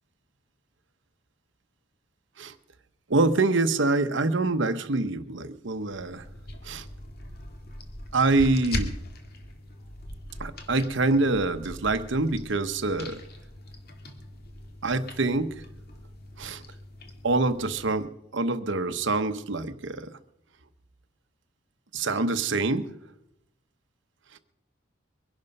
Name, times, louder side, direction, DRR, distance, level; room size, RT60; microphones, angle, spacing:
voice 1, 3.1-6.2 6.6-6.9 8.1-8.9 10.4-13.2 14.8-15.6 16.4-16.6 17.2-20.1 21.9-22.9, right 3 dB, 65° right, 9 dB, 1.0 m, -25 dB
sound 1, 5.9-18.0, left 1 dB, 55° left, 2.0 m, -40 dB
22.5 x 11.5 x 5.4 m, 0.83 s
head